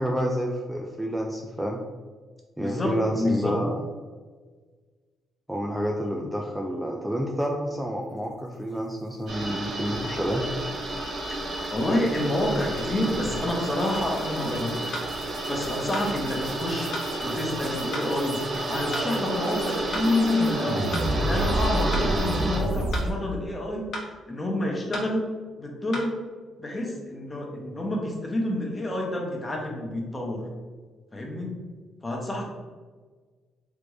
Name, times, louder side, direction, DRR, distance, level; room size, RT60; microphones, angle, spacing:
voice 1, 0.0-1.8 2.6-3.8 5.5-10.4, equal, 5° right, 0 dB, 0.3 m, -29 dB
voice 2, 2.6-3.6 11.3-11.4 11.7-15.0 15.5-16.9 17.2-25.3 25.6-26.2 26.6-30.4 31.1-31.5 32.0-32.5, left 1 dB, 25° left, 0 dB, 0.8 m, -28 dB
sound 1, 9.3-22.6, right 1 dB, 55° right, 0.9 m, -32 dB
sound 2, 10.9-23.1, right 1 dB, 90° right, 0.6 m, -32 dB
sound 3, 13.9-14.1 14.9-15.1 15.9-16.1 16.9-17.1 17.9-18.1 18.9-19.1 19.9-20.1 20.9-21.1 21.9-22.1 22.9-23.1 23.9-24.1 24.9-25.1 25.9-26.1, left 1 dB, 55° left, 0.8 m, -34 dB
3.4 x 2.6 x 3.1 m, 1.4 s
cardioid pair, 90°, 0 cm